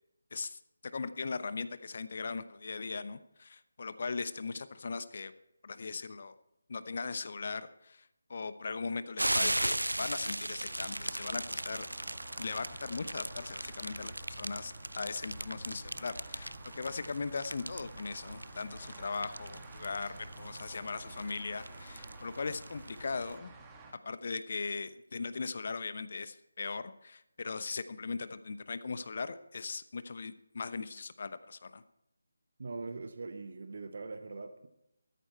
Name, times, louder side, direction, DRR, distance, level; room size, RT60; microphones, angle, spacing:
voice 1, 0.9-5.3 5.6-6.3 6.7-11.9 12.4-23.5 24.0-31.8, left 4 dB, 45° left, 13 dB, 0.9 m, -39 dB
sound 1, 9.2-23.4, right 1 dB, 80° right, 0.5 m, -38 dB
sound 2, 10.7-23.9, right 4 dB, 10° right, 1.4 m, -54 dB
sound 3, 12.6-21.3, right 2 dB, 5° left, 3.2 m, -59 dB
voice 2, 32.6-34.7, right 3 dB, 45° right, 8 dB, 1.1 m, -42 dB
14.5 x 13.5 x 4.5 m, 0.80 s
figure-of-eight pair, 155°, 0 cm